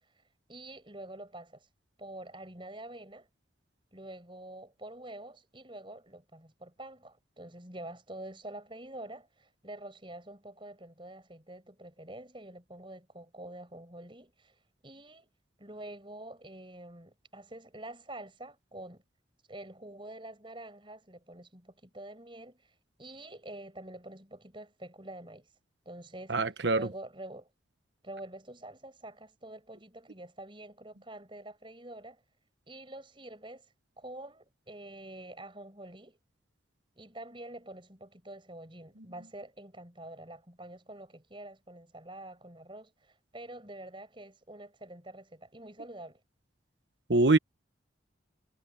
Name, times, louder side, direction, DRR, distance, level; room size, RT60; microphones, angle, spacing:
voice 1, 0.5-1.7 2.0-3.3 3.9-15.3 15.6-19.0 19.5-25.5 25.9-26.4 26.7-27.5 28.0-32.2 32.7-36.2 37.0-46.2, right 1 dB, 25° right, 5.8 m, -47 dB
voice 2, 26.3-26.9 47.1-47.4, right 2 dB, 60° right, 1.1 m, -24 dB
head